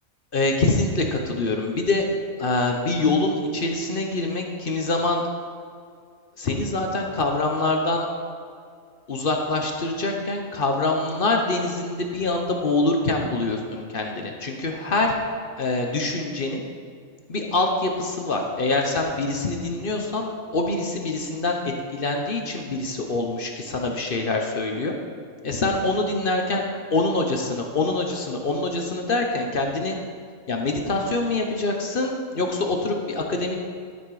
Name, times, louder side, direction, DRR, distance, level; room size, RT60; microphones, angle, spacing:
voice 1, 0.3-2.0 2.4-5.2 6.4-8.1 9.1-15.2 15.6-16.6 17.3-20.3 20.5-21.6 21.9-24.9 25.4-30.0 30.5-33.6, left 2 dB, 45° left, 2 dB, 0.9 m, -25 dB
12.0 x 5.9 x 4.8 m, 2.2 s
omnidirectional pair, 1.5 m